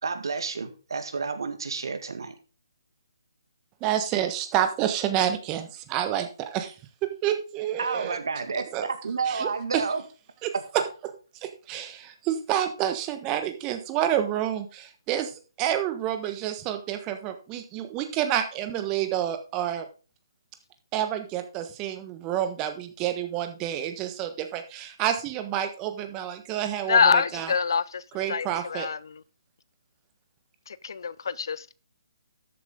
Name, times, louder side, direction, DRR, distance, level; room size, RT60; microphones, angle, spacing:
voice 1, 0.0-2.4 7.8-10.0 10.5-10.6, right 4 dB, 65° right, 1.9 m, -30 dB
voice 2, 3.8-6.7 7.2-8.2 8.7-8.9 9.3-9.8 10.4-10.5 11.4-19.9 20.9-27.5 28.1-28.9, right 11 dB, 20° right, 1.3 m, -29 dB
voice 3, 26.9-28.0 28.3-29.0 30.7-31.7, left 6 dB, 60° left, 0.6 m, -25 dB
13.0 x 7.6 x 3.8 m
figure-of-eight pair, 145°, 2 cm